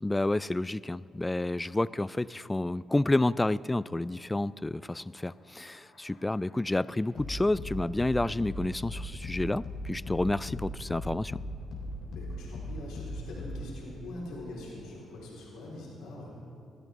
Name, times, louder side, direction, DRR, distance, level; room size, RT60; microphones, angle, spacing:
voice 1, 0.0-11.4, left 2 dB, 15° left, 20 dB, 0.3 m, -30 dB
sound 1, 5.1-13.8, left 1 dB, 65° left, 3.5 m, -40 dB
voice 2, 12.1-16.3, left 1 dB, 85° left, -5 dB, 4.3 m, -43 dB
22.0 x 13.0 x 3.7 m, 2.7 s
supercardioid pair, 65°, 0 cm